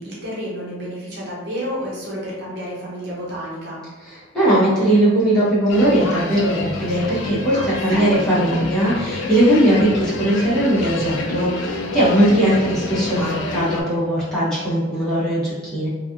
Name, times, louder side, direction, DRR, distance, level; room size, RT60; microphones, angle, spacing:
voice 1, 0.0-3.8 7.5-8.3, equal, 60° right, -5 dB, 0.8 m, -30 dB
voice 2, 4.1-15.9, right 1 dB, 5° left, -11 dB, 1.2 m, -19 dB
sound 1, 5.7-13.8, left 3 dB, 80° left, 0.4 m, -28 dB
3.2 x 2.4 x 2.6 m, 1.4 s
head